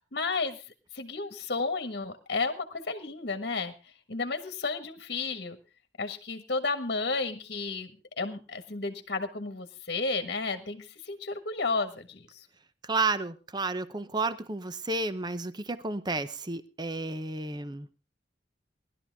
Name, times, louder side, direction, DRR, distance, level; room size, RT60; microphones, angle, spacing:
voice 1, 0.1-5.6 6.0-7.9 8.2-12.5, left 3 dB, 55° left, 8 dB, 1.4 m, -32 dB
voice 2, 12.8-17.9, right 3 dB, 25° right, 13 dB, 0.8 m, -31 dB
19.5 x 12.0 x 3.5 m, 0.31 s
head